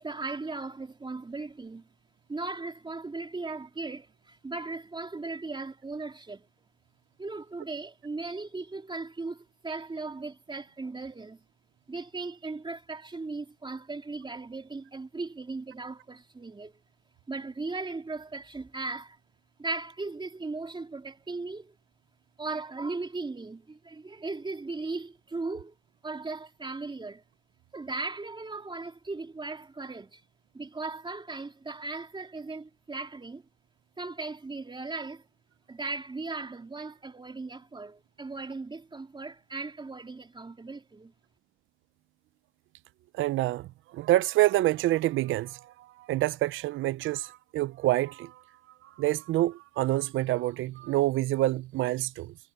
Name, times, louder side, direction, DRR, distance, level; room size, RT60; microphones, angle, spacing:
voice 1, 0.0-1.9 2.3-6.5 7.2-11.4 11.9-16.8 17.3-19.2 19.6-21.7 22.4-25.7 26.0-27.2 27.7-30.2 30.5-33.4 34.0-35.3 35.7-41.1, right 3 dB, 25° right, 3.4 m, -37 dB
voice 2, 43.1-48.4 48.8-52.3, right 16 dB, 80° right, 0.5 m, -27 dB
cardioid pair, 90°, 20 cm